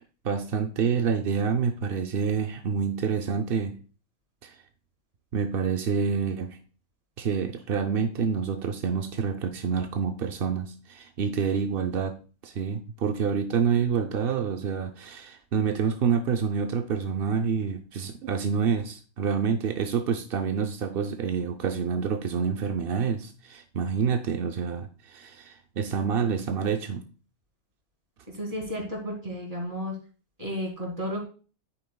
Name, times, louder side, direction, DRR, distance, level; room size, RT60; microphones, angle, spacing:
voice 1, 0.2-3.8 4.4-4.6 5.3-6.6 7.2-12.2 12.4-27.0, right 6 dB, 60° right, 5 dB, 0.6 m, -27 dB
voice 2, 28.3-30.0 30.4-31.2, equal, 25° right, 0 dB, 2.7 m, -32 dB
10.0 x 8.8 x 2.3 m, 0.37 s
omnidirectional pair, 1.5 m